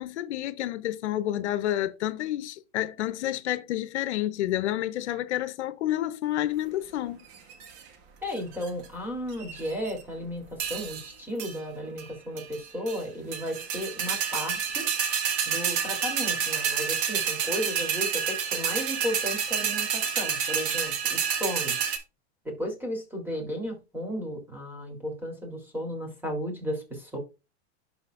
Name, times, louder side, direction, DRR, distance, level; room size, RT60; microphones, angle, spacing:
voice 1, 0.0-7.2, left 13 dB, 80° left, 0.8 m, -29 dB
sound 1, 7.3-7.8 8.4-8.9 9.3-10.0 10.6-11.1 11.4-11.6 12.0-12.1 12.4-13.0 13.3-22.0, right 7 dB, 45° right, 1.7 m, -29 dB
voice 2, 8.2-14.8 15.5-21.8 22.4-27.2, equal, 5° right, 3.1 m, -34 dB
12.0 x 4.3 x 2.5 m
supercardioid pair, 140°, 34 cm